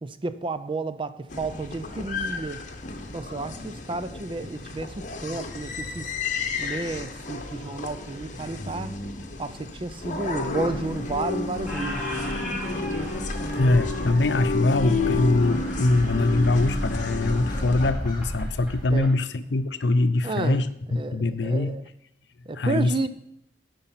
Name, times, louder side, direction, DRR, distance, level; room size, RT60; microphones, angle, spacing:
voice 1, 0.0-2.6 3.1-6.0 6.6-8.9 9.4-12.0 18.9-19.1 20.2-20.6 21.0-21.8 22.5-23.1, right 3 dB, 30° right, 0.5 m, -31 dB
sound 1, 1.3-17.9, left 3 dB, 45° left, 1.0 m, -32 dB
sound 2, 9.9-19.0, equal, 25° left, 1.9 m, -35 dB
Squeak, 10.7-11.2 11.5-19.1, left 1 dB, 10° right, 3.0 m, -39 dB
voice 2, 13.5-21.8 22.5-23.1, left 2 dB, 75° left, 0.6 m, -23 dB
13.0 x 5.3 x 5.7 m
head